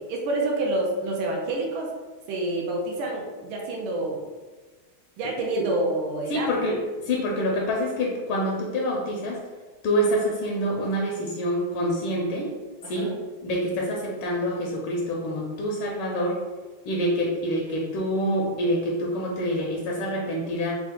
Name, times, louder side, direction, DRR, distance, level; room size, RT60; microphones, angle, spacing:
voice 1, 0.1-1.9 2.3-4.2 5.2-6.5 12.8-13.1, right 2 dB, 80° right, -1 dB, 1.6 m, -28 dB
voice 2, 6.3-9.4 9.8-12.5 12.9-13.1 13.4-16.4 16.8-20.7, equal, 80° left, -2 dB, 1.5 m, -26 dB
4.3 x 2.4 x 3.7 m, 1.3 s
omnidirectional pair, 2.3 m